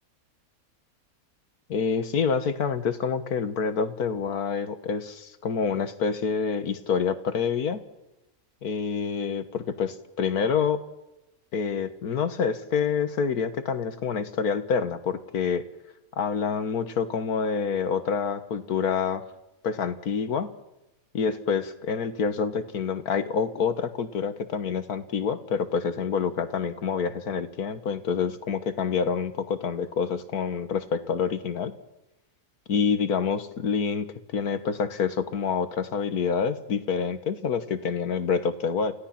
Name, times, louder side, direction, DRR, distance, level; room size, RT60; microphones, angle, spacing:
voice 1, 1.7-7.8 8.6-10.8 11.5-15.6 16.2-19.2 19.6-20.5 21.1-31.7 32.7-38.9, left 6 dB, 85° left, 10 dB, 1.8 m, -27 dB
29.0 x 16.0 x 5.8 m, 0.93 s
omnidirectional pair, 1.6 m